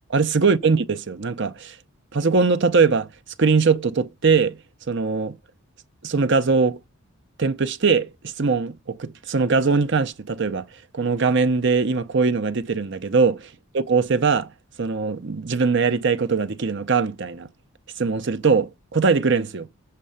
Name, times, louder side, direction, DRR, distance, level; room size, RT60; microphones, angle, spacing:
voice 1, 0.1-1.8 2.1-3.1 3.4-4.6 4.9-5.4 6.0-6.8 7.4-10.6 10.9-13.4 13.7-14.5 14.8-17.5 18.0-19.7, right 4 dB, 50° right, 0.7 m, -21 dB
7.5 x 4.3 x 5.7 m
head